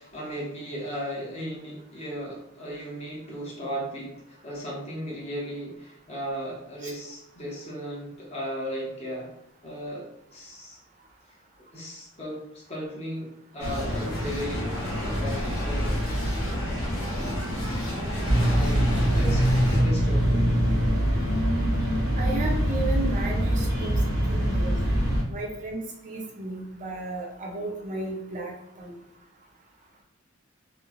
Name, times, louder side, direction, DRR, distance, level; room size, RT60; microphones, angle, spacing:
voice 1, 0.0-9.3 9.6-10.8 11.6-14.7 15.0-16.1 18.0-20.5, equal, 30° left, -4 dB, 0.8 m, -36 dB
sound 1, 13.6-19.8, equal, 85° left, 1.1 m, -29 dB
sound 2, 18.3-25.2, equal, 65° left, 0.7 m, -23 dB
voice 2, 22.2-24.0 24.3-24.8 25.3-29.0, right 2 dB, 35° right, -1 dB, 0.5 m, -34 dB
2.9 x 2.1 x 2.4 m, 0.80 s
head